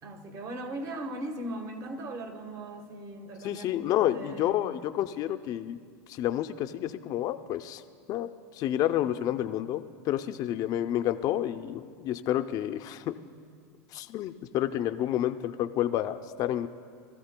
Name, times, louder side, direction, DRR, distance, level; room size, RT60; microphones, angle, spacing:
voice 1, 0.0-3.6 4.0-4.8, right 1 dB, 40° right, 6 dB, 1.3 m, -39 dB
voice 2, 3.4-5.8 6.1-7.8 8.1-13.1 13.9-16.7, left 12 dB, 40° left, 9 dB, 0.4 m, -29 dB
22.0 x 14.0 x 2.2 m, 2.1 s
supercardioid pair, 125°, 9 cm